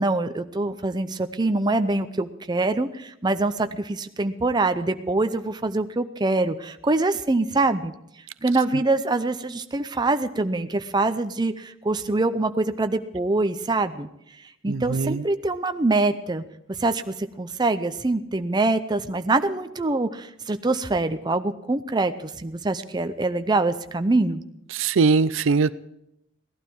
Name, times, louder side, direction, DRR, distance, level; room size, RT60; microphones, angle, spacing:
voice 1, 0.0-7.9 8.4-14.1 14.6-16.4 16.8-24.4, right 2 dB, 20° right, 9 dB, 0.6 m, -24 dB
voice 2, 14.7-15.2 24.7-25.7, right 4 dB, 75° right, 16 dB, 0.5 m, -21 dB
17.0 x 12.0 x 4.6 m, 0.81 s
head